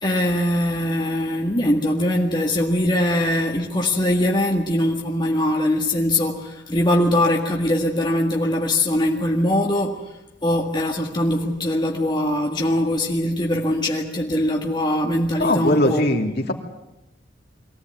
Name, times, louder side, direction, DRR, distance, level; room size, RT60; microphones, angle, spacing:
voice 1, 0.0-10.0 10.4-16.0, left 1 dB, 25° left, 0 dB, 1.8 m, -21 dB
voice 2, 15.4-16.5, left 1 dB, 60° left, 1 dB, 2.8 m, -20 dB
23.0 x 16.5 x 9.5 m, 0.94 s
head